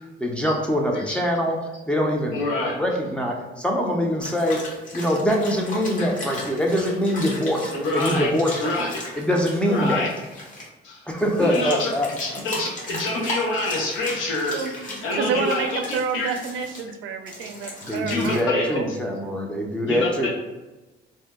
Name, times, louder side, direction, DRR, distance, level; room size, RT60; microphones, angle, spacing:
voice 1, 0.2-1.6 1.8-2.4 2.8-4.6 4.9-8.5 9.2-10.1 11.1-12.4 17.8-20.3, equal, 5° left, 0 dB, 0.5 m, -23 dB
voice 2, 2.3-2.7 7.8-8.3 8.6-9.0 9.6-10.1 10.8-11.0 11.4-11.9 12.2-15.7 16.1-16.3 18.0-18.7 19.9-20.3, left 2 dB, 80° left, -4 dB, 0.8 m, -26 dB
sound 1, 4.2-10.7 11.2-16.8 17.3-18.4, left 1 dB, 40° left, 0.9 m, -37 dB
voice 3, 14.5-18.9, right 5 dB, 80° right, 6 dB, 0.4 m, -29 dB
2.7 x 2.1 x 3.5 m, 1.1 s
cardioid pair, 90°, 20 cm